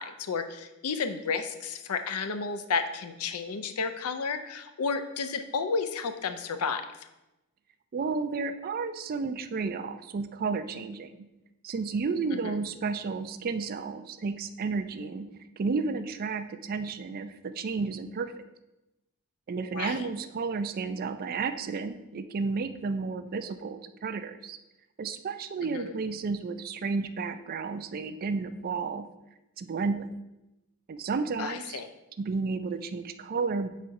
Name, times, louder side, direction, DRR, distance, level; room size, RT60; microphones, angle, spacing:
voice 1, 0.0-6.9 12.4-12.6 19.7-20.0 25.6-25.9 31.4-31.9, left 5 dB, 75° left, 9 dB, 0.5 m, -32 dB
voice 2, 7.9-11.2 11.6-15.3 15.6-18.3 19.5-24.6 25.0-29.1 29.6-30.1 30.9-31.8 32.2-33.7, right 4 dB, 40° right, 11 dB, 0.3 m, -32 dB
4.7 x 4.2 x 5.2 m, 0.96 s
head